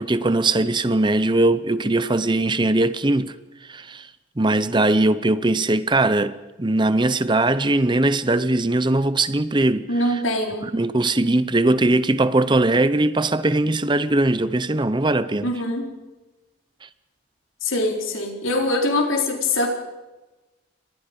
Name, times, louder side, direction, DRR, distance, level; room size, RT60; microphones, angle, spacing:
voice 1, 0.0-3.3 3.7-4.1 4.4-10.2 10.6-15.5, right 2 dB, 20° right, 0.7 m, -20 dB
voice 2, 9.9-10.7 15.4-15.9 17.6-19.7, left 2 dB, 80° left, 4.1 m, -23 dB
29.5 x 23.5 x 5.3 m
head